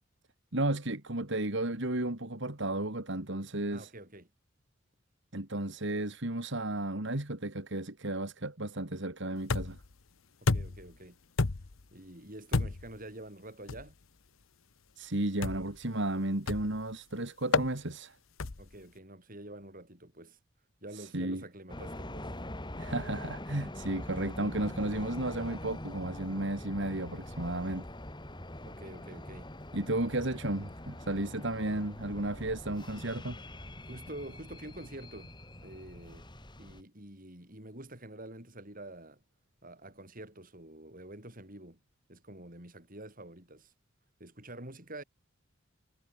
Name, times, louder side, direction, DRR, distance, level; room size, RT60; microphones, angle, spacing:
voice 1, 0.5-3.9 5.3-9.8 15.0-18.2 20.9-21.4 22.8-27.9 29.7-33.4, right 1 dB, 60° right, 2.8 m, -33 dB
voice 2, 3.7-4.3 10.4-11.2 11.9-14.0 18.6-20.4 20.8-22.3 28.6-29.5 33.9-35.4 35.6-36.3 36.6-39.2 39.6-41.8 42.1-43.7 44.2-45.0, right 1 dB, 45° right, 7.6 m, -47 dB
sound 1, 9.5-9.9 10.5-10.9 11.4-11.8 12.5-13.0 13.7-13.9 15.4-15.8 16.5-16.8 17.5-17.7 18.4-18.7, left 3 dB, 80° left, 1.0 m, -30 dB
sound 2, 21.7-36.8, left 1 dB, 20° left, 4.3 m, -44 dB
head